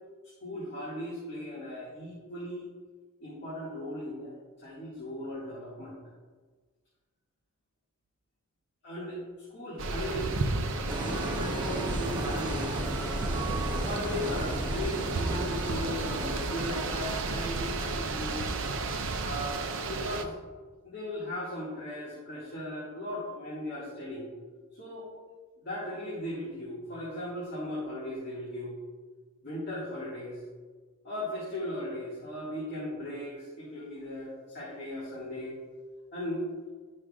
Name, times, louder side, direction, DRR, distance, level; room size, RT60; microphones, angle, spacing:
voice 1, 0.4-2.6 3.2-6.0 8.8-9.2 9.5-12.7 13.3-18.5 19.2-20.4 20.8-24.3 24.8-25.1 25.6-28.8 29.4-30.4 31.0-35.6 36.1-36.4, left 1 dB, 50° left, -9 dB, 2.0 m, -37 dB
sound 1, 9.8-20.2, right 3 dB, 60° right, 0.6 m, -33 dB
sound 2, 10.9-18.4, right 1 dB, 20° right, 1.2 m, -36 dB
11.0 x 6.3 x 2.4 m, 1.4 s
head